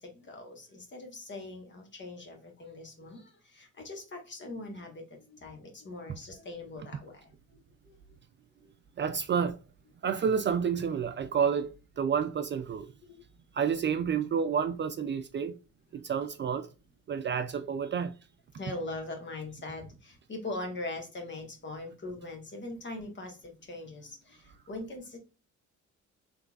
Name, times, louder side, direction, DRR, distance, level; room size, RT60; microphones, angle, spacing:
voice 1, 0.0-7.6 7.8-8.0 8.6-8.7 13.1-13.2 18.5-25.2, left 2 dB, 40° left, 1.4 m, -41 dB
voice 2, 9.0-9.6 10.0-12.9 13.6-15.6 16.0-16.7 17.1-18.1, right 7 dB, 40° right, 0.4 m, -29 dB
3.7 x 3.3 x 2.4 m
cardioid pair, 90°, 30 cm